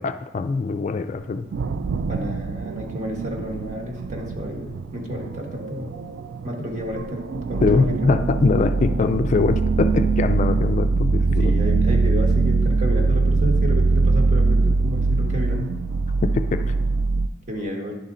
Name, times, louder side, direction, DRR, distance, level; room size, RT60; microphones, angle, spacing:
voice 1, 0.0-1.5 7.6-11.5 11.9-12.0 16.2-16.7, left 4 dB, 40° left, 9 dB, 0.3 m, -22 dB
sound 1, 1.1-17.3, right 3 dB, 75° right, 0.3 m, -22 dB
voice 2, 2.1-5.9 6.4-8.2 11.4-15.8 17.5-17.9, equal, 40° right, 1 dB, 1.3 m, -30 dB
10.5 x 4.3 x 3.7 m, 1.0 s
head